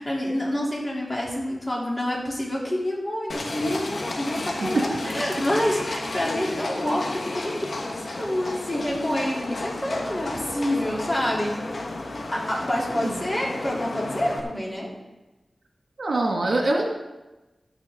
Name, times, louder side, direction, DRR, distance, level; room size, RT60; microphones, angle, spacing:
voice 1, 0.0-11.5 12.3-14.9, left 1 dB, 25° left, -4 dB, 3.2 m, -27 dB
Livestock farm animals working animals, 3.3-14.4, left 2 dB, 75° left, 1.4 m, -32 dB
voice 2, 16.0-16.9, right 2 dB, 75° right, 0 dB, 2.0 m, -23 dB
12.0 x 10.0 x 3.7 m, 1.1 s
wide cardioid pair, 85°, 0 cm